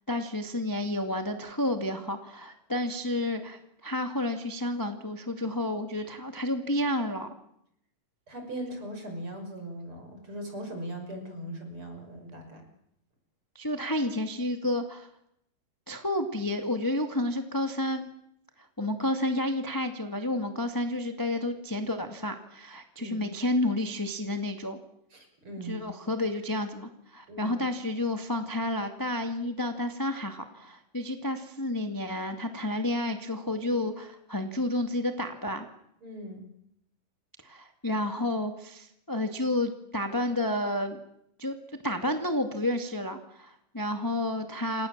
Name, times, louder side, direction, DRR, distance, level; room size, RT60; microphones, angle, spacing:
voice 1, 0.1-7.3 13.5-15.1 15.9-18.1 18.8-24.8 25.6-35.6 37.4-41.0 41.4-41.5 41.8-44.9, left 1 dB, 10° left, 5 dB, 1.3 m, -30 dB
voice 2, 8.3-12.6 23.0-23.3 25.1-25.9 27.3-27.6 36.0-36.5, right 1 dB, 35° right, 5 dB, 6.7 m, -39 dB
29.5 x 26.0 x 7.5 m, 0.76 s
omnidirectional pair, 4.1 m